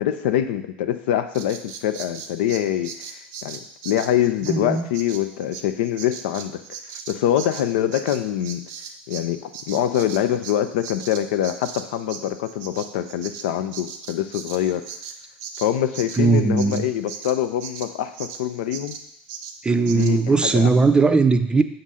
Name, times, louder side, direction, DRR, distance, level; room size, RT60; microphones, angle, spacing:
voice 1, 0.0-6.6 7.1-8.7 9.1-14.9 15.6-19.0 19.9-20.2 20.4-20.7, left 11 dB, 75° left, 10 dB, 0.4 m, -24 dB
Bird vocalization bird call bird song, 1.3-9.3 9.5-18.4 18.7-19.0 19.3-19.6 19.9-20.1 20.5-20.6, right 6 dB, 65° right, 0.6 m, -38 dB
voice 2, 4.5-4.8 16.2-16.8 19.6-21.6, right 4 dB, 15° right, 8 dB, 0.5 m, -18 dB
6.9 x 2.6 x 5.5 m, 0.77 s
hypercardioid pair, 75°, 6 cm